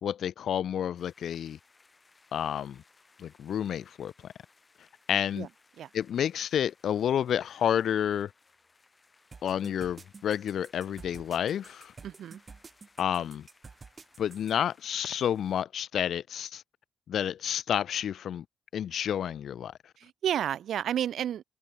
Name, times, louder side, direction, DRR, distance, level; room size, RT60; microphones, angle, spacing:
voice 1, 0.0-1.6 2.3-2.8 3.2-4.3 5.1-5.5 5.9-8.3 9.4-11.9 13.0-13.5 14.2-16.6 17.1-18.4 18.7-19.7, left 9 dB, 65° left, 0.6 m, -30 dB
sound 1, 1.0-15.6, left 3 dB, 25° left, 7.6 m, -64 dB
sound 2, 9.3-14.5, right 4 dB, 35° right, 5.9 m, -50 dB
voice 2, 12.0-12.4 20.0-21.4, right 10 dB, 70° right, 2.9 m, -31 dB
cardioid pair, 90°, 0 cm